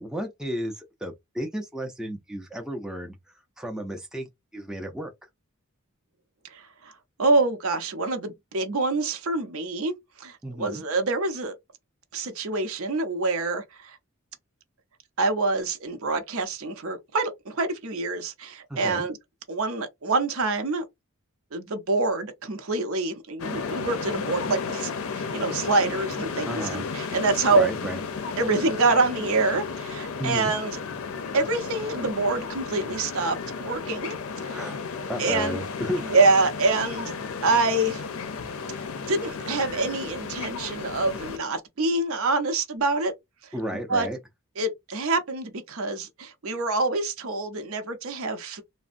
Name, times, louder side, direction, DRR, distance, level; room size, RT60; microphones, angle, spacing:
voice 1, 0.0-3.2 3.6-5.1 10.4-10.8 18.7-19.1 26.5-26.9 27.5-28.0 30.2-30.5 34.4-34.8 35.1-36.2 43.5-44.2, equal, 5° right, 0.4 m, -33 dB
voice 2, 6.5-6.9 7.2-11.6 12.1-14.0 15.2-19.2 19.5-20.8 21.5-27.7 28.4-30.8 31.3-34.1 34.4-34.7 35.2-35.6 36.1-37.1 37.4-38.0 39.0-43.1 43.9-44.1 44.6-48.6, right 3 dB, 75° right, 0.7 m, -26 dB
sound 1, 23.4-41.4, left 5 dB, 75° left, 0.5 m, -33 dB
3.3 x 2.0 x 2.5 m
head